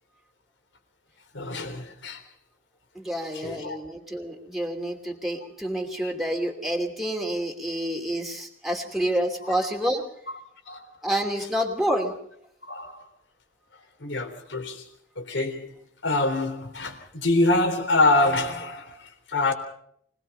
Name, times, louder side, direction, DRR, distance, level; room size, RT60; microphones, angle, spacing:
voice 1, 1.3-2.2 3.3-3.8 6.0-6.1 10.7-10.8 12.6-13.1 14.0-14.9 15.2-15.8 16.0-19.5, left 2 dB, 75° left, 3.6 m, -25 dB
voice 2, 2.9-10.0 11.0-12.1, equal, ahead, 2.8 m, -28 dB
25.0 x 19.0 x 5.6 m
head